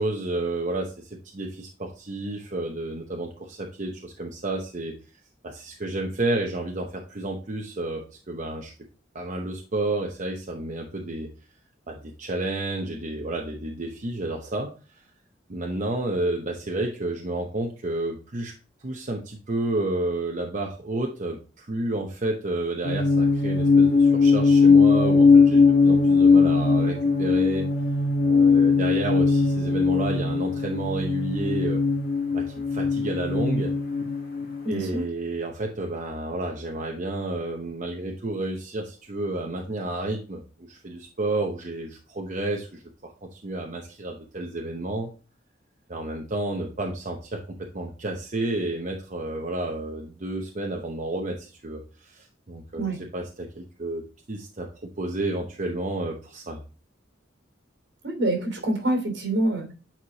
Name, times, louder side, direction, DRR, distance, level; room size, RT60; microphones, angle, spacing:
voice 1, 0.0-5.0 5.4-8.7 9.1-11.3 11.9-14.7 15.5-18.5 18.8-27.7 28.2-31.8 32.3-32.5 32.7-33.7 34.7-45.1 45.9-52.8 53.1-54.7 55.0-56.6, right 2 dB, 40° right, 1 dB, 0.8 m, -31 dB
sound 1, 22.8-34.9, left 4 dB, 50° left, 1.7 m, -20 dB
voice 2, 34.6-35.1 52.8-53.0 58.0-59.7, right 1 dB, 65° right, 3 dB, 2.9 m, -26 dB
8.9 x 4.8 x 2.8 m, 0.35 s
head